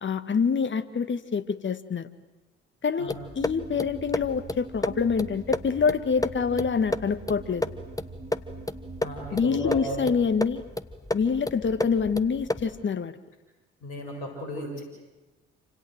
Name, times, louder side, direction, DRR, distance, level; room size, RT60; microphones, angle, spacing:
voice 1, 0.0-2.1 2.8-7.6 9.3-10.6 11.1-13.2, left 6 dB, 35° left, 12 dB, 1.8 m, -26 dB
sound 1, 3.1-12.8, left 2 dB, 10° left, 1.5 m, -33 dB
sound 2, 3.4-10.2, right 3 dB, 20° right, 3.5 m, -43 dB
voice 2, 9.0-10.1 13.8-14.8, equal, 70° left, 2 dB, 6.9 m, -35 dB
28.0 x 26.5 x 7.9 m, 1.1 s
figure-of-eight pair, 45°, 32 cm